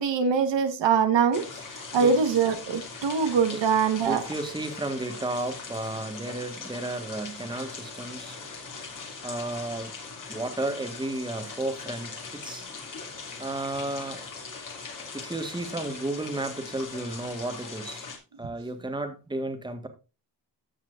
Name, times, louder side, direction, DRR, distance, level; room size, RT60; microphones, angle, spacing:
voice 1, 0.0-1.4 1.9-4.2, right 6 dB, 80° right, 8 dB, 1.5 m, -23 dB
sound 1, 1.3-18.2, left 4 dB, 45° left, 2.6 m, -40 dB
voice 2, 4.0-8.4 9.2-9.9 10.3-12.6 13.4-14.2 15.1-18.1 18.4-19.9, right 2 dB, 10° right, 6 dB, 1.5 m, -33 dB
15.0 x 6.0 x 2.5 m, 0.29 s
cardioid pair, 120°, 43 cm